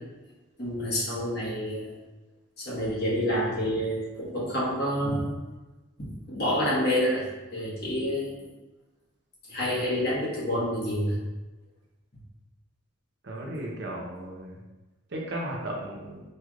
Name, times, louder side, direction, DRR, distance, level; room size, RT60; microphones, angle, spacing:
voice 1, 0.6-1.9 2.6-5.3 6.3-7.2 7.5-8.3 9.5-11.2, equal, 50° left, -7 dB, 1.4 m, -28 dB
voice 2, 13.2-14.6 15.1-16.2, right 1 dB, 55° right, -2 dB, 0.8 m, -35 dB
4.5 x 3.3 x 2.4 m, 1.1 s
head